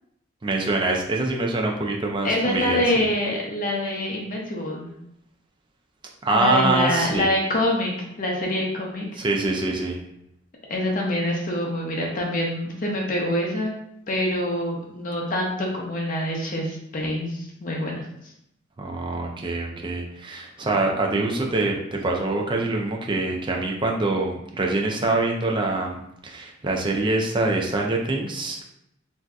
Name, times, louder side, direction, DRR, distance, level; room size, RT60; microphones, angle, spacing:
voice 1, 0.4-2.8 6.2-7.3 9.2-10.0 18.8-28.6, right 2 dB, 25° right, 0 dB, 0.4 m, -24 dB
voice 2, 2.2-4.9 6.3-9.1 10.7-13.7 14.1-18.0, left 1 dB, 45° left, -1 dB, 0.6 m, -25 dB
3.4 x 2.6 x 2.3 m, 0.78 s
head